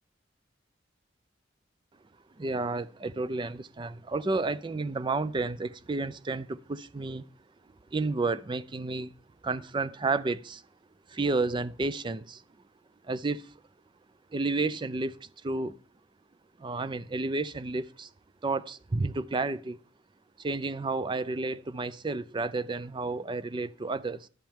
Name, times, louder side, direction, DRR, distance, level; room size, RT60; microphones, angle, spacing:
voice 1, 2.4-7.3 7.9-9.1 9.4-10.6 11.1-12.4 13.0-13.5 14.3-15.8 16.6-18.1 18.4-19.8 20.4-24.3, right 3 dB, 25° right, 0.4 m, -31 dB
11.5 x 10.5 x 3.6 m
head